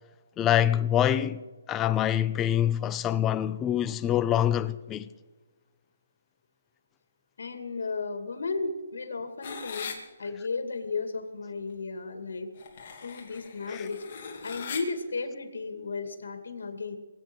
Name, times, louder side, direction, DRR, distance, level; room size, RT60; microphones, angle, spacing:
voice 1, 0.4-1.4 1.7-5.1 13.7-13.8, left 11 dB, 10° left, 0.4 m, -25 dB
voice 2, 7.4-9.9 10.2-12.5 13.0-17.0, left 4 dB, 75° left, 2.4 m, -34 dB
sound 1, 9.4-9.9 12.6-14.8, left 6 dB, 35° left, 2.4 m, -40 dB
23.0 x 8.7 x 6.2 m
hypercardioid pair, 170°, 0 cm